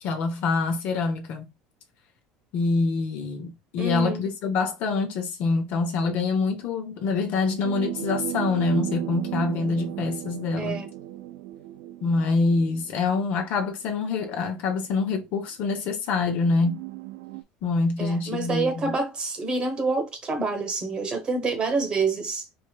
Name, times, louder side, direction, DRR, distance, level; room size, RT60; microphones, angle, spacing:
voice 1, 0.0-1.5 2.5-10.8 12.0-16.8 17.6-18.9, left 4 dB, 55° left, 1.0 m, -25 dB
voice 2, 3.8-4.2 10.6-10.9 18.0-22.4, right 3 dB, 30° right, 1.1 m, -27 dB
sound 1, 7.6-13.5 14.5-14.6 16.3-17.4, right 14 dB, 75° right, 0.4 m, -35 dB
4.4 x 3.3 x 2.3 m
cardioid pair, 130°, 3 cm